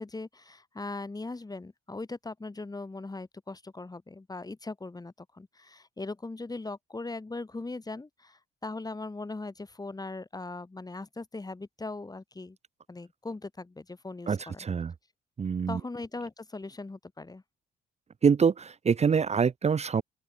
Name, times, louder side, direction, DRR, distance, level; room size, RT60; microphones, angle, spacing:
voice 1, 0.0-12.6 12.9-14.7 15.7-17.4, left 3 dB, 20° left, 3.5 m, -39 dB
voice 2, 14.3-14.9 15.4-15.8 18.2-20.0, right 6 dB, 35° right, 0.8 m, -25 dB
open air
cardioid pair, 90°, 20 cm